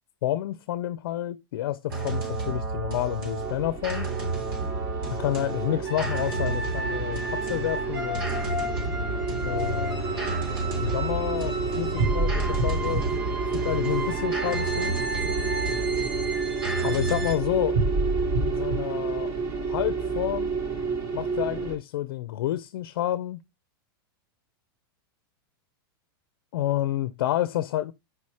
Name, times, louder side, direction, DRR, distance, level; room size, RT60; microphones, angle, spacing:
voice 1, 0.2-4.1 5.2-8.4 9.4-10.4 10.8-13.1 13.5-14.9 16.8-17.8 18.4-19.3 19.7-20.5 21.1-23.4 26.5-27.9, left 13 dB, 75° left, 0.5 m, -29 dB
sound 1, 1.9-17.3, right 2 dB, 85° right, 3.2 m, -31 dB
sound 2, 3.4-21.8, right 4 dB, 25° right, 1.0 m, -30 dB
4.9 x 4.2 x 4.8 m
supercardioid pair, 170°, 12 cm